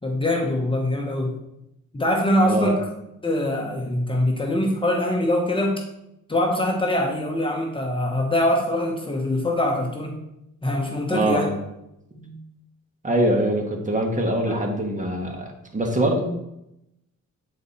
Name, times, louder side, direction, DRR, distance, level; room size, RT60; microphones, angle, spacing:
voice 1, 0.0-1.4 1.9-2.8 3.2-5.8 6.3-10.1 10.6-11.5 12.2-12.4 14.5-14.6, left 1 dB, 15° left, 0 dB, 1.0 m, -23 dB
voice 2, 2.4-2.7 11.1-11.5 13.0-16.2, right 1 dB, 25° right, 2 dB, 1.3 m, -23 dB
8.9 x 4.2 x 4.1 m, 0.86 s
cardioid pair, 115°, 31 cm